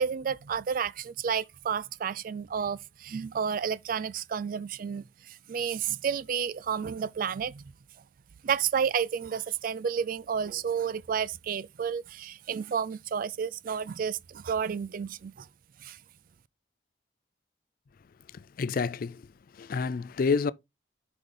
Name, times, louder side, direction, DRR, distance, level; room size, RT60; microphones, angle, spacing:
voice 1, 0.0-7.6 8.4-15.5 15.8-16.0, right 7 dB, 50° right, 0.3 m, -31 dB
voice 2, 18.3-19.2 19.5-20.5, left 5 dB, 50° left, 0.4 m, -29 dB
8.1 x 5.1 x 3.8 m
head